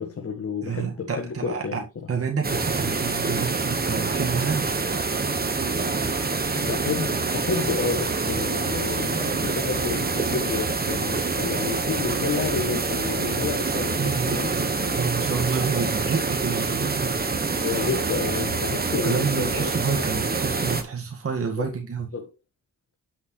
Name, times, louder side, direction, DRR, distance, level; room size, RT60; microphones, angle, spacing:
voice 1, 0.0-1.8 6.5-14.6 17.6-20.3 21.6-21.7 22.1-22.3, left 5 dB, 45° left, 1.6 m, -30 dB
voice 2, 0.6-4.7 13.9-17.2 18.9-22.1, right 5 dB, 45° right, 1.9 m, -29 dB
sound 1, 2.4-20.8, right 4 dB, 30° right, 1.4 m, -26 dB
8.8 x 6.4 x 3.3 m
cardioid pair, 75°, 32 cm